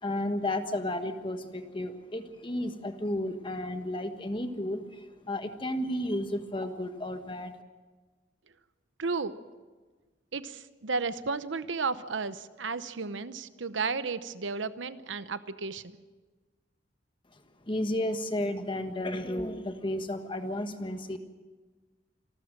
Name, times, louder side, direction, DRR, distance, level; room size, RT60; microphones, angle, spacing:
voice 1, 0.0-7.5 17.6-21.2, left 1 dB, 25° left, 7 dB, 1.4 m, -33 dB
voice 2, 9.0-9.4 10.3-15.8, right 4 dB, 85° right, 13 dB, 0.9 m, -33 dB
27.5 x 13.0 x 7.6 m, 1.3 s
head